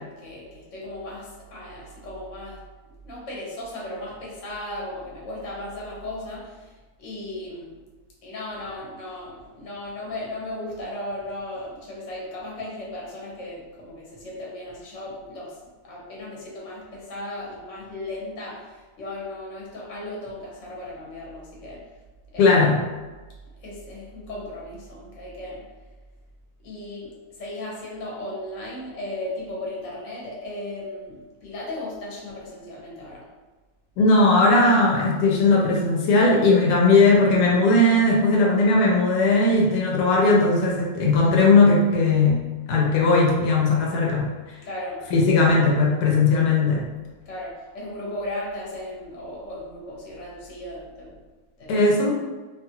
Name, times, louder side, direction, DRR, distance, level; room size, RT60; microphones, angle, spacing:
voice 1, 0.0-2.6 3.0-6.7 7.0-7.8 8.2-15.6 15.8-21.9 22.3-22.6 23.6-25.7 26.6-33.3 44.6-45.0 47.3-51.2 51.6-52.1, left 1 dB, 55° left, -4 dB, 1.1 m, -36 dB
voice 2, 22.4-22.8 34.0-42.4 42.7-44.3 45.1-46.9 51.7-52.1, left 3 dB, 90° left, -2 dB, 1.1 m, -18 dB
2.8 x 2.4 x 2.8 m, 1.3 s
omnidirectional pair, 1.6 m